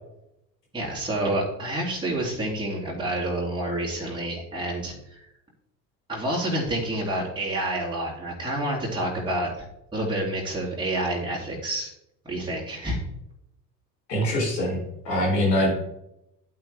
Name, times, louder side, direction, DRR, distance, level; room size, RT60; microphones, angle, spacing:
voice 1, 0.7-5.2 6.1-9.7 9.9-11.9 12.2-13.0, right 1 dB, 10° right, -5 dB, 2.9 m, -28 dB
voice 2, 14.1-15.7, left 1 dB, 75° left, -2 dB, 3.8 m, -24 dB
10.5 x 8.9 x 3.5 m, 0.84 s
figure-of-eight pair, 60°, 50 cm